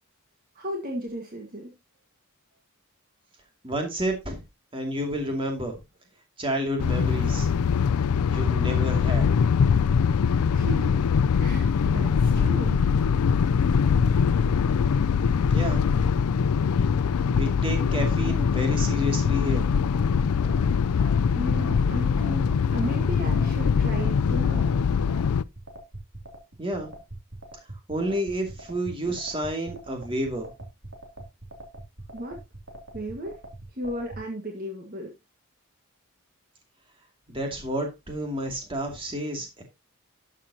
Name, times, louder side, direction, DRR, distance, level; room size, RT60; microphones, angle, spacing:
voice 1, 0.5-1.7 10.5-11.0 11.4-12.8 21.3-24.8 32.1-32.4 32.9-33.4 33.7-35.1, equal, 40° right, 1.7 m, -35 dB
voice 2, 3.6-4.4 4.7-5.8 6.4-7.5 8.3-9.8 15.5-16.1 17.3-19.7 26.6-26.9 27.9-30.5 37.3-39.6, right 1 dB, 25° right, 2.4 m, -30 dB
sound 1, 6.8-25.4, left 6 dB, 90° left, 0.4 m, -22 dB
sound 2, 20.4-34.2, right 2 dB, 60° right, 2.7 m, -42 dB
12.0 x 7.4 x 2.8 m
head